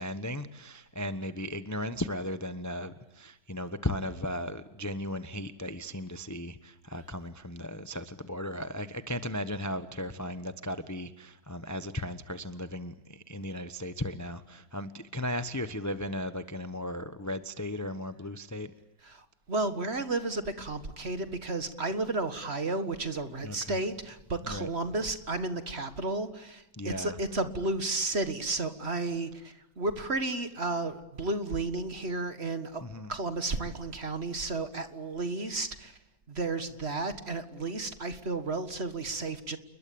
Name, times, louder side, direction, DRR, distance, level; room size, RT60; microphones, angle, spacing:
voice 1, 0.0-18.7 23.4-23.8 24.5-24.7 26.7-27.2 32.8-33.1, left 1 dB, 15° left, 11 dB, 0.9 m, -36 dB
voice 2, 19.0-32.8 33.1-36.0 36.3-39.6, right 2 dB, 40° right, 10 dB, 1.9 m, -32 dB
29.5 x 21.5 x 8.7 m, 0.93 s
omnidirectional pair, 1.9 m